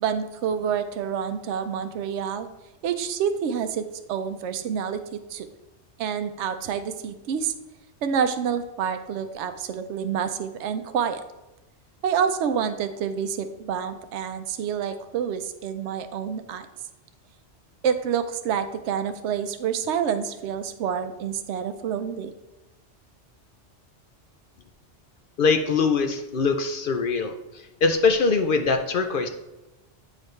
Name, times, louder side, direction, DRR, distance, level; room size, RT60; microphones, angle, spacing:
voice 1, 0.0-2.5 2.8-5.5 6.0-7.5 8.0-11.2 12.0-16.7 17.8-22.3, right 7 dB, 80° right, 9 dB, 0.9 m, -28 dB
voice 2, 25.4-29.3, left 4 dB, 60° left, 6 dB, 0.6 m, -23 dB
9.0 x 5.0 x 3.1 m, 1.0 s
omnidirectional pair, 1.2 m